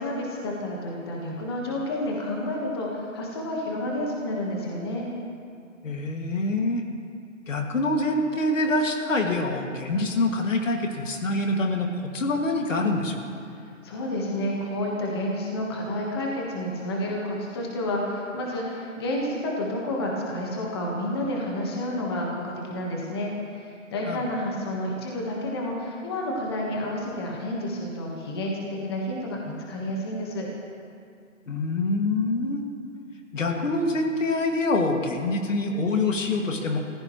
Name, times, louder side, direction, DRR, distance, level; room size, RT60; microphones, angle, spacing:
voice 1, 0.0-5.1 13.8-30.5, left 1 dB, 20° left, -2 dB, 1.4 m, -30 dB
voice 2, 5.8-6.8 7.5-13.2 24.1-24.2 31.5-32.6 33.3-36.8, left 2 dB, 70° left, 2 dB, 2.3 m, -25 dB
24.5 x 15.0 x 3.1 m, 2.4 s
hypercardioid pair, 175°, 39 cm